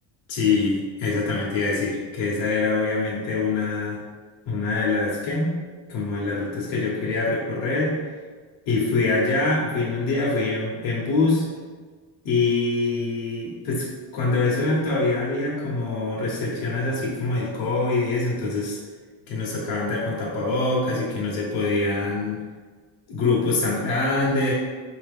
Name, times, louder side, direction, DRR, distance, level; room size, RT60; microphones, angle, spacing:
voice 1, 0.3-4.0 4.5-5.6 5.9-8.2 8.7-11.5 12.2-18.8 19.3-22.4 23.1-24.5, left 3 dB, 70° left, -4 dB, 1.0 m, -24 dB
4.0 x 2.8 x 3.4 m, 1.5 s
cardioid pair, 160°, 49 cm